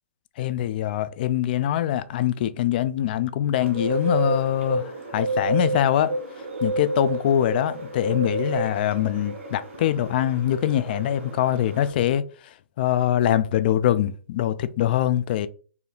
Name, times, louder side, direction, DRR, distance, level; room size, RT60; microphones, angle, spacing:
voice 1, 0.4-6.1 6.6-15.5, left 11 dB, 40° left, 0.4 m, -23 dB
Bird, 3.6-11.9, right 2 dB, 60° right, 2.0 m, -30 dB
4.5 x 2.7 x 3.4 m
hypercardioid pair, 135°, 8 cm